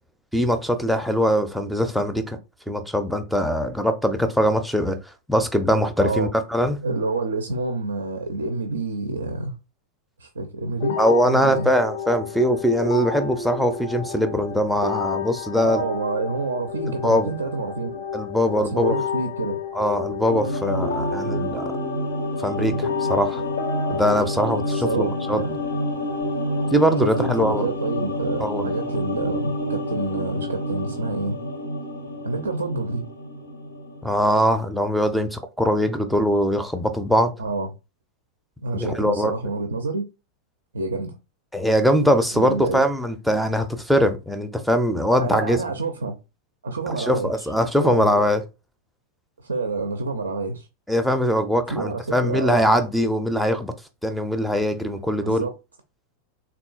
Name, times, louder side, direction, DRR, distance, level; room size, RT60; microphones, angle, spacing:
voice 1, 0.3-2.4 2.7-6.8 11.0-15.8 17.0-17.3 18.1-19.0 19.7-21.7 22.4-23.4 23.9-25.4 26.7-27.7 28.4-28.7 34.0-37.3 38.7-39.3 41.5-45.6 46.9-48.4 50.9-53.7 54.0-55.5, equal, ahead, 0.4 m, -22 dB
voice 2, 6.0-6.3 6.8-9.6 10.2-11.7 15.6-18.0 18.6-19.6 24.7-25.6 27.0-31.4 32.2-33.1 37.4-37.7 38.6-40.1 40.7-41.1 42.3-42.8 45.2-46.2 46.6-47.5 47.8-48.2 49.4-50.7 51.7-52.7 55.2-55.5, right 3 dB, 70° right, 0.4 m, -28 dB
sound 1, 10.8-26.8, left 6 dB, 55° left, 0.5 m, -31 dB
sound 2, 20.3-34.8 35.1-35.2, equal, 85° left, 0.8 m, -29 dB
3.6 x 2.3 x 2.3 m
figure-of-eight pair, 90°, 0 cm